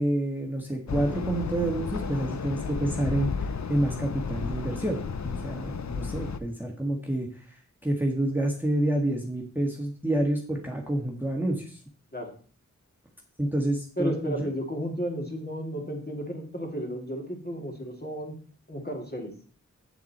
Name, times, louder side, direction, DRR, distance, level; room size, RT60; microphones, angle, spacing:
voice 1, 0.0-11.8 13.4-14.5, right 1 dB, 5° right, 1 dB, 1.6 m, -28 dB
sound 1, 0.9-6.4, left 5 dB, 65° left, 0.7 m, -33 dB
voice 2, 14.0-18.3 18.7-19.3, equal, 30° left, 1 dB, 2.7 m, -33 dB
8.0 x 7.3 x 4.3 m, 0.42 s
wide cardioid pair, 60°, 31 cm